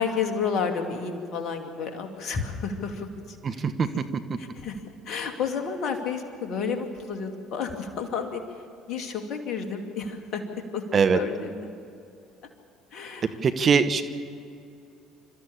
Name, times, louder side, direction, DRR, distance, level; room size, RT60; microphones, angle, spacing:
voice 1, 0.0-3.7 3.9-4.0 4.4-4.8 5.1-8.4 8.9-10.4 10.7-10.8 11.1-11.7 12.9-13.4, left 6 dB, 55° left, 5 dB, 2.4 m, -31 dB
voice 2, 13.4-14.0, right 6 dB, 40° right, 9 dB, 1.2 m, -21 dB
29.0 x 13.5 x 7.3 m, 2.5 s
figure-of-eight pair, 55°, 0 cm